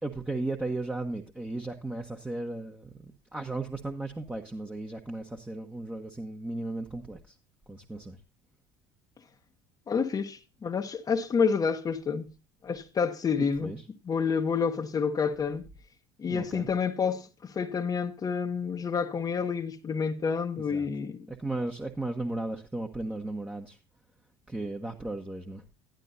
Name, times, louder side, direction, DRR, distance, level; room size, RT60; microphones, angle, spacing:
voice 1, 0.0-7.3 7.7-8.2 13.6-13.8 16.3-16.7 20.7-20.9 21.3-23.8 24.5-25.6, right 2 dB, 10° right, 1.2 m, -35 dB
voice 2, 9.9-12.3 12.6-13.7 14.0-15.7 16.2-21.3, left 6 dB, 35° left, 1.1 m, -29 dB
11.5 x 11.0 x 2.7 m
hypercardioid pair, 65°, 12 cm